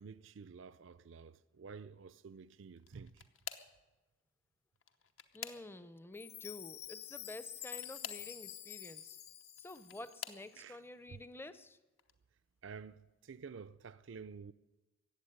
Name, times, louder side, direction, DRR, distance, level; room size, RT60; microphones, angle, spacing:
voice 1, 0.0-3.3 10.5-10.8 11.1-11.2 12.6-14.5, right 5 dB, 65° right, 0.5 m, -51 dB
sound 1, 2.8-3.8 4.8-6.0 7.6-8.3 9.4-10.5 11.2-11.6 12.0-12.1 13.5-13.6, left 9 dB, 70° left, 1.0 m, -48 dB
voice 2, 5.3-9.2 9.6-11.8, left 2 dB, 10° left, 0.6 m, -50 dB
Chime, 6.1-10.4, left 11 dB, 50° left, 1.9 m, -49 dB
15.0 x 8.3 x 10.0 m
head